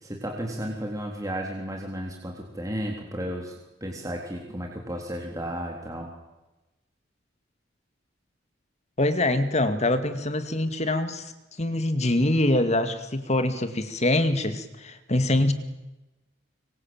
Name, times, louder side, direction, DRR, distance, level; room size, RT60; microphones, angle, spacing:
voice 1, 0.0-3.5 3.8-6.1, equal, 20° right, 3.6 m, -33 dB
voice 2, 9.0-11.3 11.6-15.5, left 1 dB, 35° left, 2.2 m, -24 dB
25.5 x 24.0 x 8.9 m
head